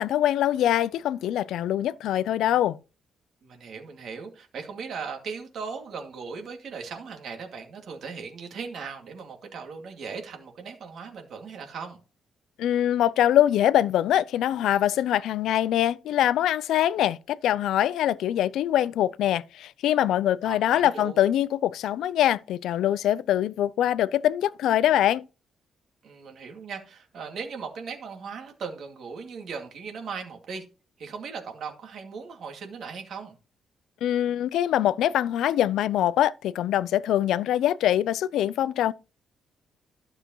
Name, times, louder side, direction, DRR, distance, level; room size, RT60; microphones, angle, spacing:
voice 1, 0.0-2.8 12.6-25.2 34.0-38.9, left 12 dB, 85° left, 0.4 m, -23 dB
voice 2, 3.4-12.0 20.4-21.2 26.0-30.7 31.0-33.4, right 5 dB, 55° right, 2.2 m, -38 dB
12.5 x 6.7 x 3.0 m
cardioid pair, 160°, 0 cm